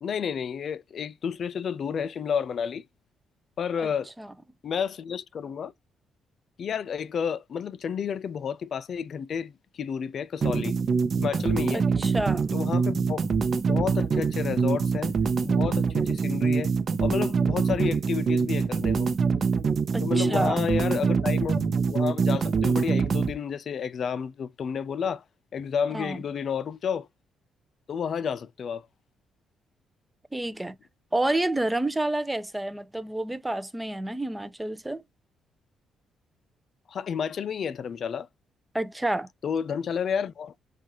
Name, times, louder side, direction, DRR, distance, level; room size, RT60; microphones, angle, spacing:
voice 1, 0.0-2.8 3.6-4.1 4.6-5.7 6.6-10.8 11.2-11.8 12.5-13.4 13.7-15.1 15.4-16.7 17.0-19.1 20.0-25.2 25.5-27.1 27.9-28.9 36.9-38.3 39.4-40.5, left 7 dB, 55° left, 0.4 m, -31 dB
sound 1, 10.4-23.3, right 5 dB, 50° right, 0.7 m, -25 dB
voice 2, 11.7-12.5 19.9-20.6 25.9-26.2 30.3-30.8 31.1-35.0 38.7-39.3, right 1 dB, 10° right, 0.5 m, -29 dB
7.1 x 2.4 x 2.9 m
cardioid pair, 90°, 0 cm